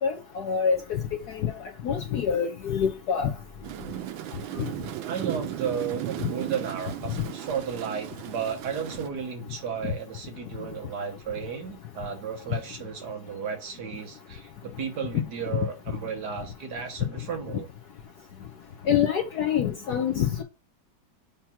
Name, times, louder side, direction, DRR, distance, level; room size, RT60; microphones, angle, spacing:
voice 1, 0.0-1.0 1.3-1.5 1.8-3.3 18.9-20.4, left 7 dB, 65° left, 1.1 m, -26 dB
sound 1, 3.6-9.1, right 14 dB, 85° right, 1.4 m, -36 dB
voice 2, 5.0-17.7, right 6 dB, 60° right, 1.6 m, -34 dB
7.3 x 3.0 x 5.7 m
omnidirectional pair, 2.1 m